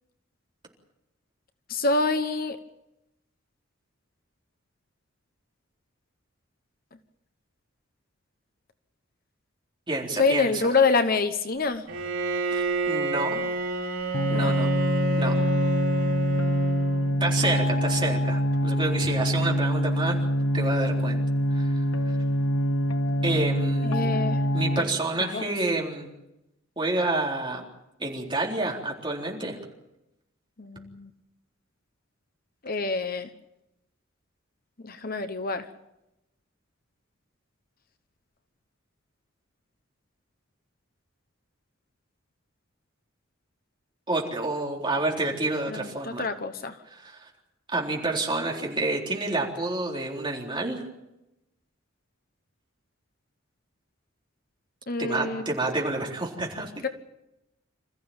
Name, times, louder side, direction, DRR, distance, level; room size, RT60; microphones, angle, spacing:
voice 1, 1.7-2.6 10.2-11.9 14.3-14.6 23.8-24.5 24.8-24.9 25.2-25.5 30.6-31.1 32.6-33.3 34.8-35.7 45.7-46.8 54.9-55.5 56.8-56.9, left 3 dB, 45° left, 10 dB, 1.1 m, -26 dB
voice 2, 9.9-10.7 12.5-13.4 14.3-14.7 15.2-15.3 17.2-20.2 20.5-21.2 21.5-21.8 23.2-24.2 24.5-26.1 26.8-27.6 28.0-29.6 44.1-46.3 46.9-47.3 47.7-50.8 55.0-56.7, right 2 dB, 25° right, -1 dB, 3.9 m, -29 dB
Bowed string instrument, 11.9-17.3, right 2 dB, 85° right, 3.7 m, -29 dB
sound 1, 14.1-24.8, equal, 85° left, 1.4 m, -25 dB
27.0 x 14.5 x 8.9 m, 0.91 s
head